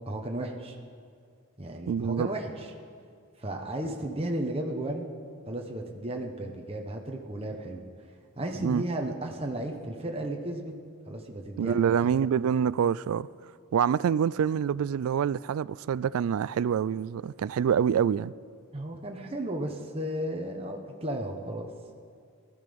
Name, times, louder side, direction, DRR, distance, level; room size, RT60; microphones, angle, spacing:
voice 1, 0.1-0.8 1.6-2.7 3.4-5.1 5.5-7.8 8.4-10.7 11.1-11.9 18.7-21.7, right 1 dB, 25° right, 1.1 m, -34 dB
voice 2, 1.9-2.3 8.6-8.8 11.6-13.3 13.7-18.3, right 8 dB, 75° right, 0.3 m, -26 dB
18.0 x 13.0 x 5.3 m
head